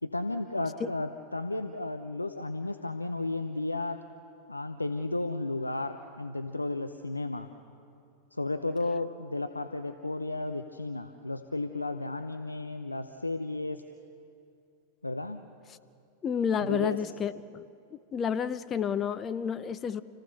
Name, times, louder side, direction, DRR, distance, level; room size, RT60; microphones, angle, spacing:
voice 1, 0.0-4.0 4.5-7.5 8.3-13.8 15.0-15.4 16.6-17.0, left 2 dB, 85° left, 8 dB, 0.7 m, -33 dB
voice 2, 16.2-17.6 17.9-20.0, left 7 dB, 25° left, 12 dB, 0.7 m, -30 dB
29.5 x 15.5 x 6.8 m, 2.5 s
figure-of-eight pair, 90°, 0 cm